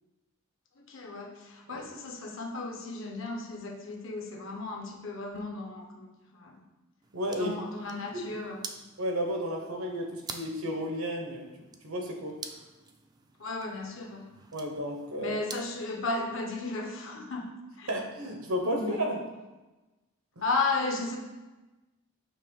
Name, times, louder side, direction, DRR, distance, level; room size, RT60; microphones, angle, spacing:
voice 1, 0.8-6.6 7.3-8.6 13.4-14.3 15.2-17.5 17.8-17.9 18.6-19.0 20.4-21.2, left 3 dB, 65° left, 2 dB, 1.0 m, -34 dB
sound 1, 7.0-15.8, right 4 dB, 20° right, 0.4 m, -48 dB
voice 2, 7.1-7.5 9.0-11.5 11.8-12.4 14.5-15.4 17.9-19.2 20.4-20.5, equal, 85° right, 2 dB, 1.1 m, -32 dB
6.5 x 3.1 x 5.4 m, 1.1 s
head